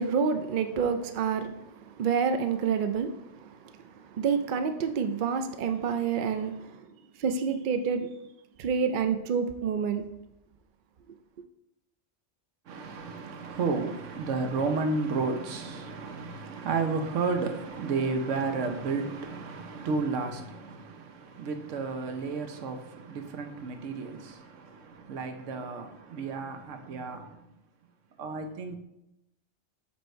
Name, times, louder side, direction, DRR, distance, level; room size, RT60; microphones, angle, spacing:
voice 1, 0.0-6.9 7.2-8.1 8.6-10.0, right 6 dB, 60° right, 0.5 m, -28 dB
voice 2, 12.7-27.4 28.2-28.8, right 4 dB, 85° right, 1.1 m, -32 dB
7.7 x 3.4 x 4.4 m
omnidirectional pair, 1.2 m